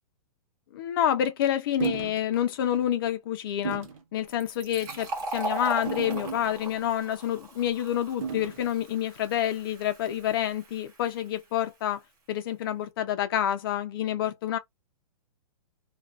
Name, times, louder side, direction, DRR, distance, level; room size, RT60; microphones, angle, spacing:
voice 1, 0.7-5.1 5.3-12.0 12.3-14.6, left 10 dB, 40° left, 0.7 m, -28 dB
sound 1, 1.8-2.2 2.7-2.9 3.6-4.0 4.8-5.1 5.9-6.8 8.2-8.7, right 6 dB, 60° right, 0.9 m, -34 dB
Fill (with liquid), 4.3-11.6, right 2 dB, 35° right, 1.9 m, -39 dB
3.2 x 2.5 x 2.4 m
hypercardioid pair, 165°, 19 cm